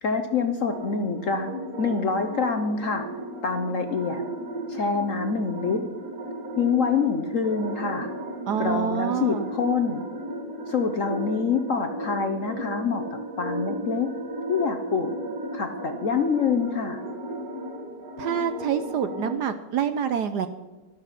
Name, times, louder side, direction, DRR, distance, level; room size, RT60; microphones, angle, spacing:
voice 1, 0.0-3.1 3.4-4.2 4.7-5.8 6.6-8.1 8.6-10.0 10.7-14.1 14.5-15.1 15.5-17.0, left 5 dB, 55° left, 6 dB, 0.9 m, -26 dB
sound 1, 0.7-19.4, right 1 dB, 45° right, 1.9 m, -35 dB
voice 2, 8.5-9.5 18.2-20.5, right 8 dB, 70° right, 10 dB, 1.0 m, -27 dB
12.0 x 12.0 x 5.7 m, 1.2 s
omnidirectional pair, 2.2 m